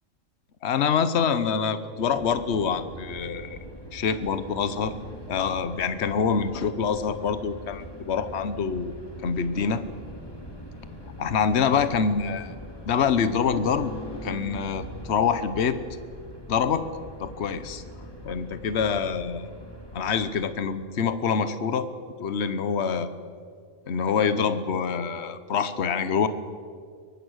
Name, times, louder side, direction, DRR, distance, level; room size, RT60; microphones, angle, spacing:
voice 1, 0.6-3.6 3.9-4.9 5.3-8.9 9.2-9.8 11.2-12.5 12.9-13.9 14.2-15.8 16.5-16.9 17.2-17.8 18.2-19.5 19.9-21.9 22.2-23.1 23.9-26.3, left 6 dB, 50° left, 12 dB, 1.2 m, -25 dB
sound 1, 1.9-20.6, equal, 15° left, 2.4 m, -42 dB
23.5 x 18.5 x 6.4 m, 2.1 s
omnidirectional pair, 1.5 m